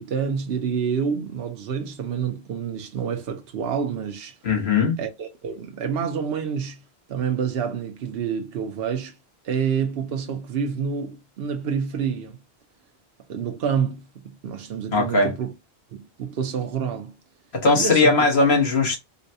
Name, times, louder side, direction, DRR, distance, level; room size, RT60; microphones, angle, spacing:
voice 1, 0.0-4.3 5.0-6.8 7.1-9.1 9.4-12.4 13.3-14.0 14.4-15.5 15.9-17.2 17.8-18.1, right 7 dB, 70° right, 0.9 m, -28 dB
voice 2, 4.4-5.0 14.9-15.3 17.5-19.0, left 3 dB, 80° left, 1.5 m, -19 dB
3.9 x 2.2 x 2.6 m
omnidirectional pair, 1.1 m